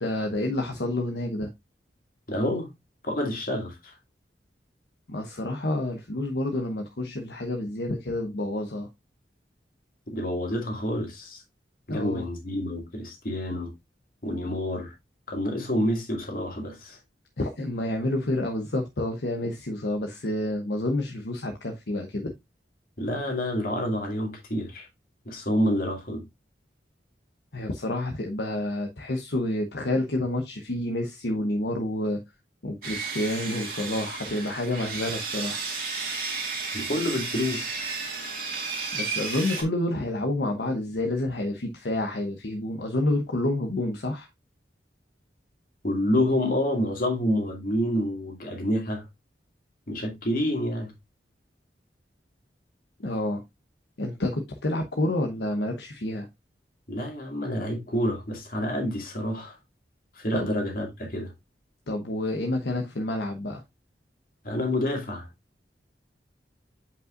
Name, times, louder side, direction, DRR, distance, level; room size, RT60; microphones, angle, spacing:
voice 1, 0.0-1.5 5.1-8.9 11.9-12.2 17.4-22.3 27.5-32.2 32.6-35.6 38.9-44.3 53.0-53.4 54.0-56.3 60.3-60.5 61.9-63.6, left 1 dB, 70° left, 0.9 m, -29 dB
voice 2, 2.3-2.7 3.0-3.9 10.1-11.4 11.9-13.7 14.2-14.9 15.3-17.0 23.0-24.9 25.2-26.2 36.7-37.8 45.8-49.0 49.9-50.9 56.9-59.6 60.2-61.3 64.4-65.3, left 1 dB, 50° left, 2.3 m, -28 dB
Sawing, 32.8-39.6, right 4 dB, 55° right, 2.1 m, -33 dB
7.7 x 5.4 x 2.5 m
head